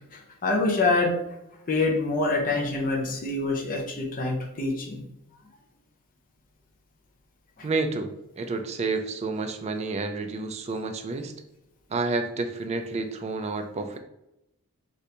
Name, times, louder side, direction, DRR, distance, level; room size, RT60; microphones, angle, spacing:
voice 1, 0.1-1.1 1.7-5.0 7.6-7.7, left 3 dB, 40° left, 0 dB, 0.6 m, -26 dB
voice 2, 7.6-11.3 11.9-14.0, right 3 dB, 30° right, 6 dB, 0.3 m, -30 dB
2.8 x 2.6 x 3.3 m, 0.86 s
head